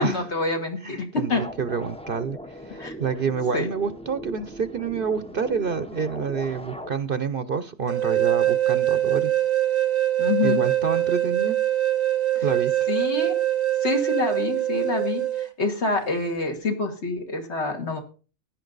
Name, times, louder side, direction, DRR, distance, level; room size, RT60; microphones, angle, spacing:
voice 1, 0.0-1.4 2.8-2.9 3.5-3.7 10.2-10.6 12.4-12.5 12.9-13.4 13.8-18.0, left 3 dB, 55° left, 3 dB, 2.5 m, -26 dB
voice 2, 0.8-9.3 10.4-11.6 12.4-12.9, right 6 dB, 50° right, 12 dB, 0.9 m, -28 dB
sound 1, 1.3-6.9, equal, 5° left, 0.6 m, -39 dB
sound 2, 7.9-15.5, right 13 dB, 85° right, 1.3 m, -23 dB
16.0 x 11.0 x 4.0 m, 0.37 s
omnidirectional pair, 1.3 m